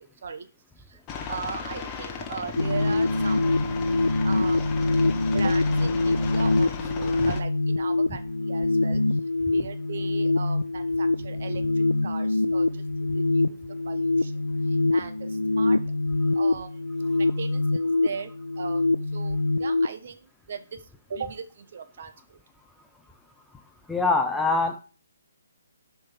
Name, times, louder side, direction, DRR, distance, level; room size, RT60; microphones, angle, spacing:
Aircraft, 1.1-7.4, left 6 dB, 20° left, 1.4 m, -36 dB
voice 1, 1.3-3.6 4.2-4.9 5.3-9.2 9.5-13.6 13.8-14.4 14.7-15.8 16.3-16.8 17.1-18.3 18.6-18.8 19.1-20.7 21.1-22.4, right 5 dB, 55° right, 8 dB, 1.4 m, -38 dB
sound 1, 2.6-19.9, left 2 dB, 90° left, 0.5 m, -24 dB
voice 2, 23.9-24.8, left 3 dB, 5° left, 4 dB, 0.9 m, -24 dB
6.5 x 5.4 x 6.0 m, 0.35 s
figure-of-eight pair, 145°, 0 cm